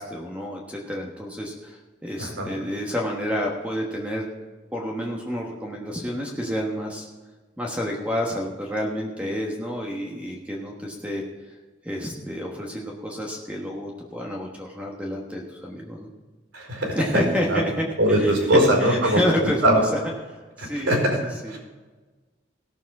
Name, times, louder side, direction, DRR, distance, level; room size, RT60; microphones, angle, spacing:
voice 1, 0.0-4.3 4.7-7.1 7.6-11.6 11.8-16.1 16.9-19.6 19.9-20.0 20.3-21.6, equal, 5° right, -1 dB, 1.2 m, -29 dB
voice 2, 16.5-17.2 17.5-17.6 18.0-19.8 20.7-21.6, right 1 dB, 75° right, 0 dB, 4.7 m, -21 dB
17.0 x 7.1 x 4.8 m, 1.3 s
head